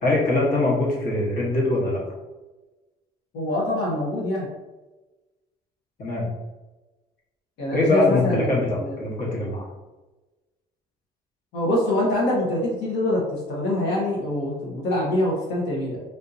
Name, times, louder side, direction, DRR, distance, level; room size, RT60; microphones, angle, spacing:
voice 1, 0.0-2.0 6.0-6.3 7.7-9.7, left 2 dB, 55° left, -4 dB, 1.2 m, -22 dB
voice 2, 3.3-4.5 7.6-8.9 11.5-16.0, left 1 dB, 85° left, -5 dB, 1.0 m, -24 dB
3.5 x 2.6 x 2.6 m, 1.1 s
cardioid pair, 110°, 17 cm